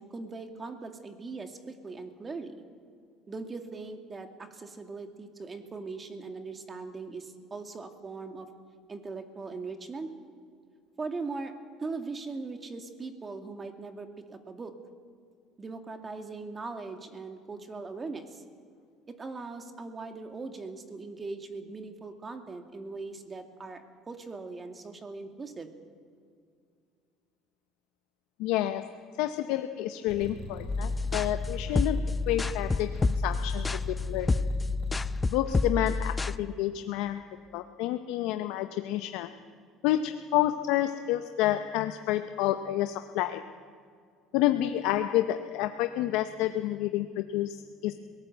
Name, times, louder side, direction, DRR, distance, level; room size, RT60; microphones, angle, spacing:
voice 1, 0.0-2.6 3.3-8.5 8.9-10.1 11.0-11.5 11.8-14.8 15.6-18.4 19.1-25.7, right 3 dB, 30° right, 6 dB, 2.4 m, -40 dB
voice 2, 28.4-34.3 35.3-37.3 37.5-39.3 39.8-43.5 44.3-47.9, left 13 dB, 80° left, 8 dB, 0.8 m, -29 dB
sound 1, 30.1-35.2, left 1 dB, 65° right, 6.4 m, -41 dB
sound 2, 30.7-36.4, left 3 dB, 20° left, 0.6 m, -29 dB
21.5 x 18.0 x 8.0 m, 2.2 s
supercardioid pair, 80°, 0 cm